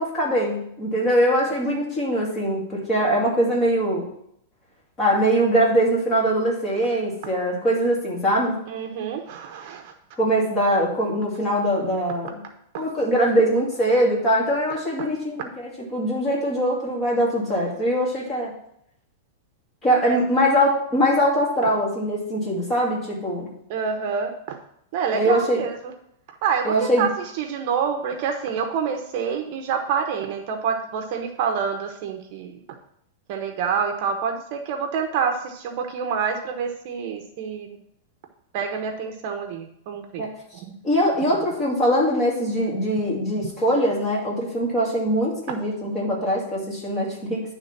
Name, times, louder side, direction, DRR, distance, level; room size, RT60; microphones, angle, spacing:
voice 1, 0.0-4.1 5.0-8.6 10.2-12.4 12.8-15.5 15.9-18.5 19.8-23.5 25.1-25.6 26.6-27.1 40.2-40.3 40.8-47.4, equal, 20° left, -4 dB, 2.7 m, -22 dB
voice 2, 8.7-9.9 20.0-20.2 23.7-24.6 24.9-25.9 26.4-32.6 33.3-37.7 38.5-40.7 41.3-41.4 43.4-43.5, right 6 dB, 45° right, 5 dB, 1.0 m, -27 dB
10.5 x 3.7 x 5.9 m, 0.72 s
supercardioid pair, 160°, 0 cm